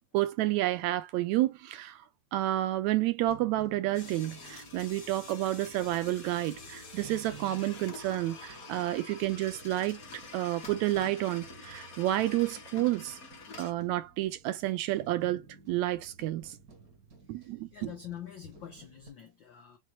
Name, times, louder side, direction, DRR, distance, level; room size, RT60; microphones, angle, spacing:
voice 1, 0.1-2.0 2.3-10.0 10.3-13.2 13.6-15.4 15.7-16.6 17.3-17.9, right 15 dB, 80° right, 2.0 m, -30 dB
sound 1, 3.3-19.1, right 5 dB, 50° right, 1.1 m, -54 dB
sound 2, 3.9-13.7, left 4 dB, 45° left, 1.2 m, -47 dB
voice 2, 17.4-19.8, left 9 dB, 85° left, 1.0 m, -46 dB
6.0 x 2.5 x 2.9 m
omnidirectional pair, 3.3 m